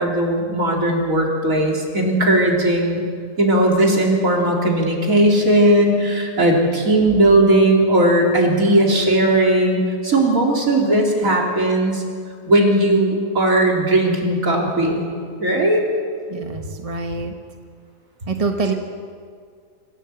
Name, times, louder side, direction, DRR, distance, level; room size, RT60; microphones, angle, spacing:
voice 1, 0.0-3.0 3.4-12.0 12.5-15.1 15.4-15.8, right 1 dB, 50° right, -1 dB, 3.9 m, -17 dB
voice 2, 16.3-17.3 18.3-18.7, right 4 dB, 25° right, 4 dB, 1.1 m, -25 dB
26.0 x 15.5 x 8.1 m, 2.1 s
omnidirectional pair, 1.8 m